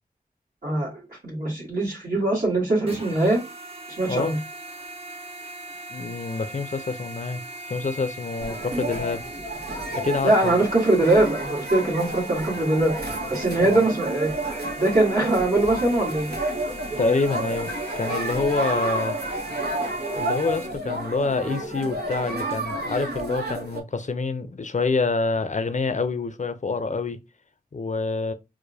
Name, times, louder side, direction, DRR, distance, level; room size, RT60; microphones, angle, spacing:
voice 1, 1.2-3.4 4.0-4.4 10.2-13.0 13.3-14.3 14.8-16.3, right 2 dB, 60° right, 1.4 m, -22 dB
sound 1, 2.8-20.7, right 1 dB, 35° right, 0.8 m, -39 dB
voice 2, 5.9-7.4 7.7-9.2 9.9-10.6 13.6-13.8 17.0-17.7 18.0-19.2 20.2-27.2 27.7-28.3, left 3 dB, 50° left, 0.5 m, -26 dB
sound 2, 8.4-23.8, right 2 dB, 85° right, 0.8 m, -31 dB
4.7 x 2.1 x 2.7 m
wide cardioid pair, 65°, 16 cm